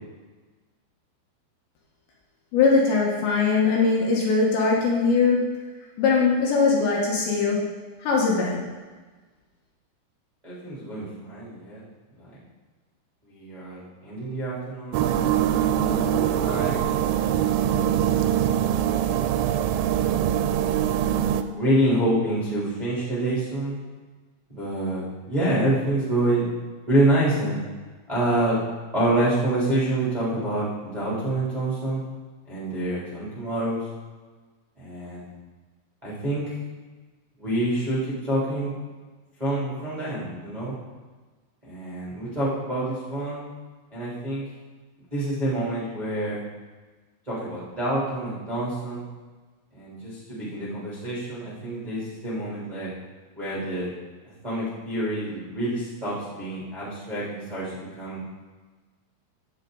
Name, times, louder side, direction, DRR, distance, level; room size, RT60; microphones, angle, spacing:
voice 1, 2.5-5.4 6.0-7.6 8.0-8.7, left 4 dB, 70° left, -3 dB, 3.2 m, -21 dB
voice 2, 10.4-11.8 13.3-15.2 15.9-16.8 21.5-23.8 24.6-26.5 26.9-27.6 28.1-28.6 28.9-32.0 32.5-33.8 34.8-35.2 36.0-36.4 37.4-38.7 39.4-40.7 41.6-43.4 43.9-44.4 45.1-46.4 47.3-49.0 49.7-52.9 53.3-53.9 54.4-58.2, right 1 dB, 15° right, -10 dB, 1.5 m, -27 dB
sound 1, 14.9-21.4, right 10 dB, 85° right, 3.0 m, -23 dB
16.5 x 6.7 x 3.9 m, 1.3 s
omnidirectional pair, 5.9 m